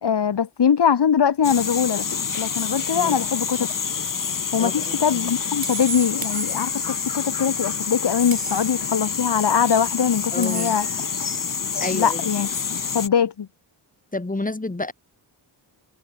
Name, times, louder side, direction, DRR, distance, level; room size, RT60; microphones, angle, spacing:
voice 1, 0.0-2.1 2.3-3.7 4.5-10.9 11.7-12.5 12.9-13.5, left 7 dB, 65° left, 2.4 m, -22 dB
sound 1, 1.4-13.1, left 6 dB, 45° left, 2.3 m, -27 dB
sound 2, 4.1-4.3 5.6-7.1 8.3-8.9 10.4-11.1, right 7 dB, 50° right, 1.6 m, -35 dB
voice 2, 4.6-5.2 10.3-10.8 11.8-12.2 14.1-14.9, left 2 dB, 20° left, 6.0 m, -30 dB
wide cardioid pair, 150°, 44 cm